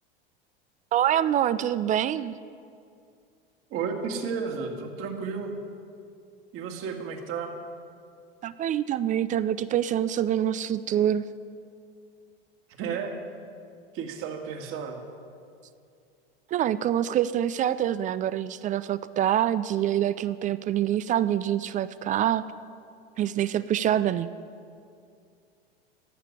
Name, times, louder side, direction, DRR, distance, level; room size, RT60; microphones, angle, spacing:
voice 1, 0.9-2.4 8.4-11.2 16.5-22.5 23.2-24.3, right 11 dB, 25° right, 15 dB, 0.4 m, -25 dB
voice 2, 3.7-5.5 6.5-7.5 12.8-13.2 13.9-15.0, right 5 dB, 45° right, 3 dB, 2.0 m, -32 dB
15.0 x 6.7 x 9.6 m, 2.4 s
hypercardioid pair, 95°, 29 cm